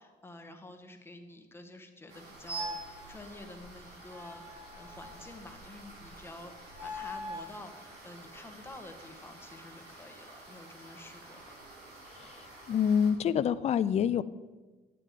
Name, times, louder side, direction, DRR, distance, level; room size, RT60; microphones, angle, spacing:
voice 1, 0.0-11.5, left 2 dB, 15° left, 5 dB, 1.4 m, -49 dB
sound 1, 2.1-13.1, right 2 dB, 70° right, 4.2 m, -51 dB
sound 2, 2.5-3.0 4.1-5.4 6.7-7.6, equal, 10° right, 1.7 m, -40 dB
voice 2, 12.2-14.2, left 8 dB, 40° left, 14 dB, 0.4 m, -27 dB
11.0 x 8.6 x 5.0 m, 1.3 s
cardioid pair, 110°, 17 cm